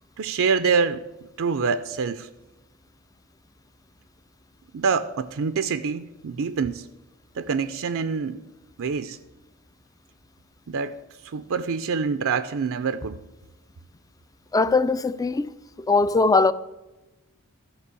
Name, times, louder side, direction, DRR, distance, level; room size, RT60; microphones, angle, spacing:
voice 1, 0.2-2.3 4.7-6.9 7.4-8.4 8.8-9.2 10.7-11.0 11.2-13.2, right 5 dB, 65° right, 0.5 m, -26 dB
voice 2, 14.5-15.5 15.8-16.5, left 3 dB, 15° left, 0.4 m, -20 dB
13.0 x 5.2 x 8.2 m
head